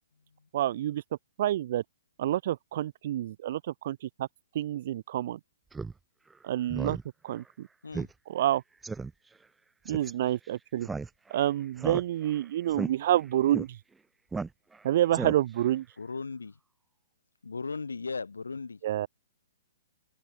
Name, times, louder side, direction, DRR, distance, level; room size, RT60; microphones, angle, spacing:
voice 1, 0.5-1.0 1.4-1.8 2.2-4.3 4.5-5.4 6.4-7.0 7.2-7.7 8.3-8.6 9.9-10.9 11.3-13.7 14.8-15.8 18.8-19.1, right 12 dB, 45° right, 0.5 m, -28 dB
Speech synthesizer, 5.7-5.9 6.3-6.4 6.7-7.0 7.4-7.5 7.9-8.1 8.4-8.5 8.8-9.1 9.9-10.1 10.8-11.4 11.8-12.4 12.7-12.9 13.5-13.7 14.3-14.8 15.1-15.7, right 4 dB, 10° right, 1.2 m, -34 dB
voice 2, 16.0-16.5 17.4-18.8, left 4 dB, 70° left, 1.3 m, -36 dB
open air
figure-of-eight pair, 120°, 0 cm